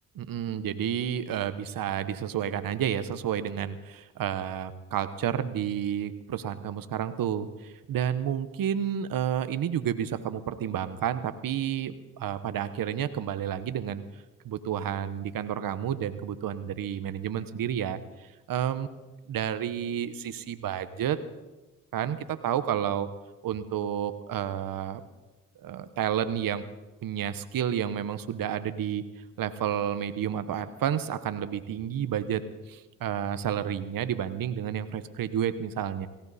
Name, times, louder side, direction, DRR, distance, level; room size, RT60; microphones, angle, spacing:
voice 1, 0.1-14.0 14.4-18.9 19.3-21.2 21.9-23.1 23.4-25.0 25.6-26.6 27.0-29.0 29.4-32.4 32.7-36.1, right 9 dB, 70° right, 12 dB, 1.1 m, -30 dB
17.5 x 17.0 x 4.2 m, 1.1 s
supercardioid pair, 60°, 35 cm